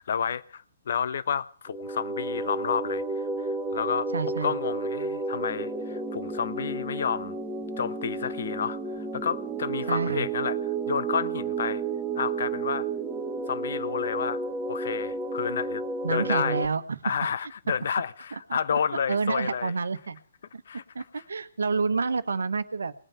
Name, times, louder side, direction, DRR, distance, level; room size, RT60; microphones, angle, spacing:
voice 1, 0.0-4.1 4.4-7.4 7.8-11.8 12.2-12.9 13.5-14.4 14.7-15.8 16.1-16.6 17.0-19.7 20.7-20.8 21.1-21.2, left 7 dB, 55° left, 0.9 m, -30 dB
sound 1, 1.7-16.7, right 3 dB, 10° right, 1.3 m, -32 dB
voice 2, 4.1-4.5 9.9-10.3 16.0-17.0 18.5-18.6 19.1-20.2 20.5-20.6 20.9-22.9, right 4 dB, 65° right, 1.2 m, -28 dB
19.5 x 8.9 x 8.0 m
figure-of-eight pair, 125°, 0 cm